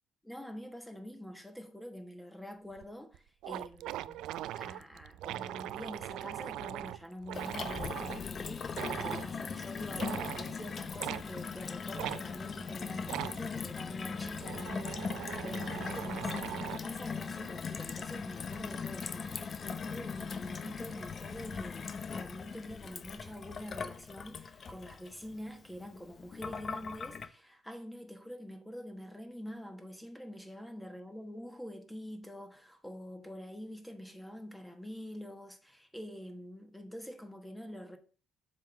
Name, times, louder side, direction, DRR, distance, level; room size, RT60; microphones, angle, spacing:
voice 1, 0.2-4.3 4.6-38.0, equal, 5° left, 1.1 m, -46 dB
sound 1, 2.8-2.9 3.1-3.2 3.4-8.3 8.7-9.3 9.9-10.5 11.0-11.3 12.0-12.2 13.0-13.4 14.1-16.9, right 14 dB, 80° right, 0.3 m, -40 dB
Gurgling / Water tap faucet / Sink (filling or washing), 7.3-27.3, left 5 dB, 40° left, 0.6 m, -40 dB
7.4 x 3.8 x 6.4 m
cardioid pair, 105°, 0 cm